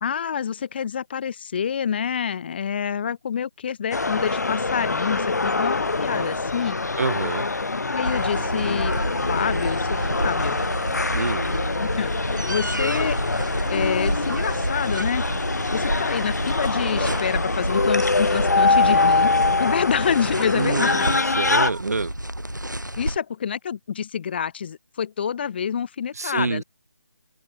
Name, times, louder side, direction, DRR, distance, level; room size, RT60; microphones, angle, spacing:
voice 1, 0.0-6.8 7.9-9.0 9.3-10.6 11.8-13.2 13.7-15.2 15.7-19.3 19.6-21.1 23.0-26.6, left 7 dB, 35° left, 1.6 m, -27 dB
sound 1, 3.9-21.7, left 3 dB, 65° left, 1.3 m, -24 dB
voice 2, 7.0-7.5 8.3-8.6 11.1-11.5 20.5-22.1 26.1-26.6, right 4 dB, 55° right, 1.5 m, -27 dB
sound 2, 8.0-23.2, right 1 dB, 85° right, 5.9 m, -29 dB
open air
figure-of-eight pair, 150°, 10 cm